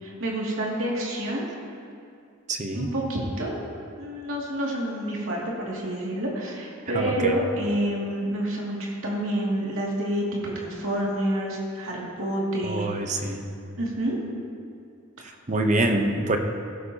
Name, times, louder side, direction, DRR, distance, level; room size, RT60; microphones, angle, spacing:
voice 1, 0.0-1.5 2.7-3.6 4.0-12.9 13.1-13.4 13.8-14.2, right 1 dB, 70° right, -4 dB, 2.4 m, -28 dB
voice 2, 2.5-2.9 6.9-7.4 12.6-13.5 15.5-16.4, right 2 dB, 35° right, 5 dB, 0.8 m, -25 dB
16.0 x 11.5 x 2.9 m, 2.4 s
head